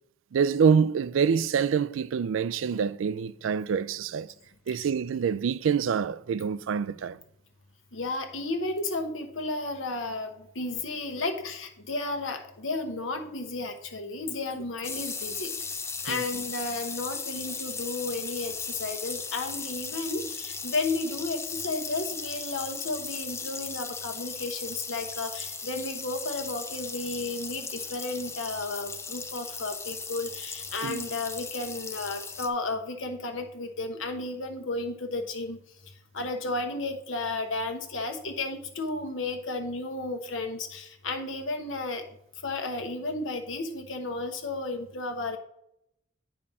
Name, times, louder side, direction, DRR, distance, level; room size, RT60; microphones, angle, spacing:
voice 1, 0.3-4.3 4.7-7.2 16.1-16.2 30.8-31.0, right 6 dB, 90° right, 0.4 m, -26 dB
voice 2, 7.9-15.5 16.0-35.6 36.1-42.0 42.4-45.4, left 2 dB, 85° left, 1.1 m, -33 dB
sound 1, 14.8-32.5, left 5 dB, 15° left, 0.4 m, -37 dB
8.7 x 4.3 x 5.5 m
head